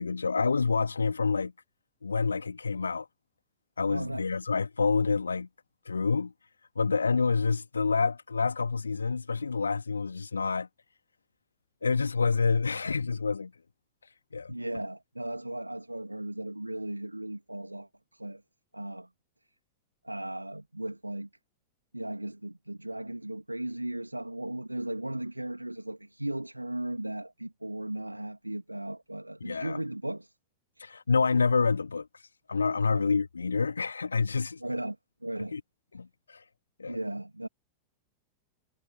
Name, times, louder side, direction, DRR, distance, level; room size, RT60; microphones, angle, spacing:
voice 1, 0.0-1.5 2.0-3.1 3.8-5.5 5.9-6.3 6.8-10.7 11.8-13.5 14.3-14.5 29.4-29.8 30.8-32.1 32.5-34.6 35.5-35.6 35.9-36.4 36.8-37.0, left 4 dB, 75° left, 1.9 m, -27 dB
voice 2, 3.9-4.3 14.5-18.4 18.7-19.1 20.0-21.3 21.9-30.3 30.8-30.9 32.9-33.1 34.6-35.0 35.2-35.6 36.9-37.5, right 1 dB, 85° right, 1.8 m, -36 dB
figure-of-eight pair, 90°, 0 cm